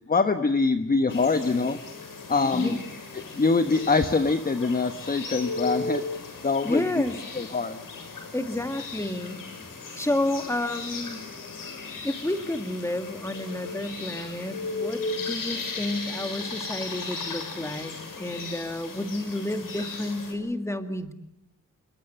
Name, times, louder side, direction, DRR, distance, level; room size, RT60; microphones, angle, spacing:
voice 1, 0.0-1.8 2.3-2.8 3.1-6.0 6.4-6.8 7.3-7.8, left 4 dB, 30° left, 8 dB, 1.1 m, -24 dB
sound 1, 1.1-20.3, left 3 dB, 85° left, 6.6 m, -36 dB
sound 2, 1.1-18.6, left 4 dB, 60° left, 4.8 m, -50 dB
voice 2, 6.6-7.2 8.3-9.4 10.0-11.2 12.0-21.1, left 1 dB, 10° left, 8 dB, 2.1 m, -30 dB
28.0 x 22.0 x 7.9 m, 0.83 s
wide cardioid pair, 145°, 32 cm